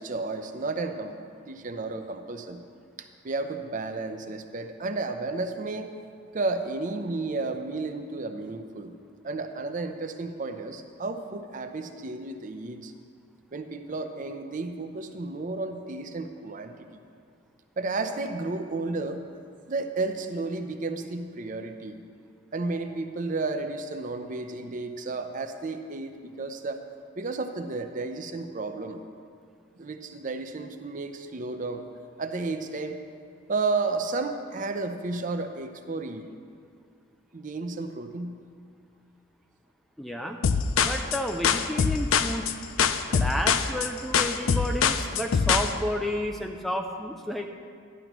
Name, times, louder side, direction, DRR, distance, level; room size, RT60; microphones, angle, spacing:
voice 1, 0.0-2.6 3.0-6.0 6.3-8.9 9.2-12.9 13.5-16.8 17.8-19.2 19.7-22.0 22.5-26.8 27.2-29.0 29.8-31.9 32.2-33.0 33.5-36.3 37.3-38.4, right 3 dB, 40° right, 7 dB, 0.6 m, -32 dB
voice 2, 40.0-40.4 40.8-42.5 43.1-47.5, equal, ahead, 3 dB, 0.3 m, -31 dB
sound 1, 40.4-45.7, left 6 dB, 90° left, 0.4 m, -23 dB
12.5 x 10.5 x 3.0 m, 2.2 s
head